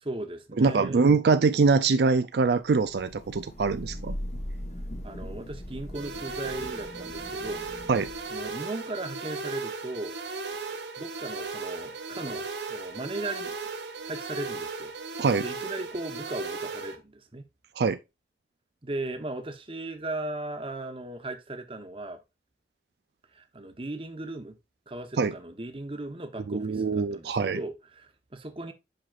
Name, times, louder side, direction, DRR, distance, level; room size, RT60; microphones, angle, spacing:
voice 1, 0.0-1.1 5.0-7.7 8.3-10.1 11.0-13.6 14.0-14.9 15.4-17.4 18.8-22.2 23.3-24.6 24.9-28.7, right 2 dB, 30° right, 0.9 m, -37 dB
voice 2, 0.6-4.2 7.9-8.1 15.2-15.4 17.8-18.0 25.2-25.3 26.5-27.6, right 4 dB, 70° right, 0.4 m, -23 dB
Thunder / Rain, 2.7-8.5, equal, 40° left, 1.2 m, -39 dB
sound 1, 5.9-16.9, right 4 dB, 85° right, 1.4 m, -36 dB
7.7 x 5.8 x 2.4 m
head